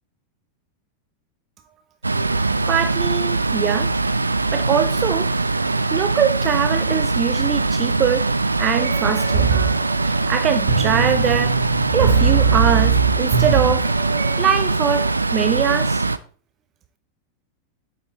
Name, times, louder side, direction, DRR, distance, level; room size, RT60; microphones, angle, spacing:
sound 1, 2.0-16.2, right 3 dB, 80° right, 0.4 m, -22 dB
voice 1, 2.7-3.9 4.5-5.3 5.9-8.3 8.6-9.5 10.0-13.9 14.4-16.0, right 8 dB, 30° right, 0.6 m, -22 dB
sound 2, 8.8-14.4, right 6 dB, 60° right, 1.6 m, -21 dB
8.6 x 7.6 x 3.2 m
figure-of-eight pair, 90°, 0 cm